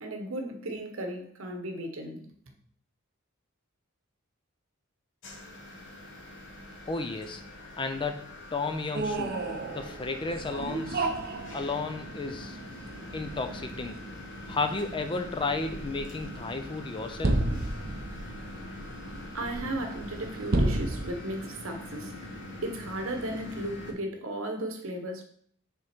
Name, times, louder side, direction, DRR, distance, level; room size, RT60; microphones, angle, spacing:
voice 1, 0.0-2.3 19.3-22.1 22.6-25.2, right 1 dB, 65° right, 1.1 m, -35 dB
sound 1, 5.2-23.9, left 1 dB, 65° left, 1.2 m, -44 dB
voice 2, 6.9-7.4 7.8-9.4 9.7-11.1 11.5-12.6 13.1-14.0 14.5-17.5, left 3 dB, 25° left, 0.5 m, -33 dB
sound 2, 8.9-21.1, right 2 dB, 50° right, 0.7 m, -33 dB
6.3 x 3.7 x 4.4 m
head